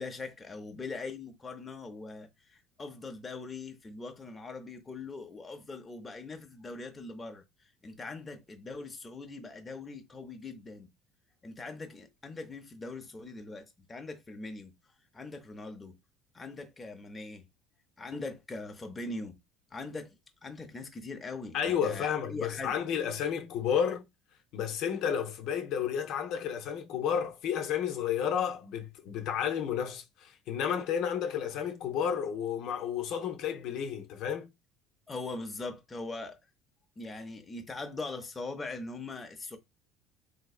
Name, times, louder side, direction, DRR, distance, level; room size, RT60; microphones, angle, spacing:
voice 1, 0.0-10.9 11.4-14.7 15.1-15.9 16.3-17.4 18.0-19.4 19.7-20.1 20.4-22.7 35.1-36.4 37.0-39.6, left 3 dB, 20° left, 0.7 m, -41 dB
voice 2, 21.5-24.1 24.5-34.5, left 8 dB, 65° left, 0.7 m, -31 dB
3.2 x 2.7 x 2.4 m
supercardioid pair, 95°, 0 cm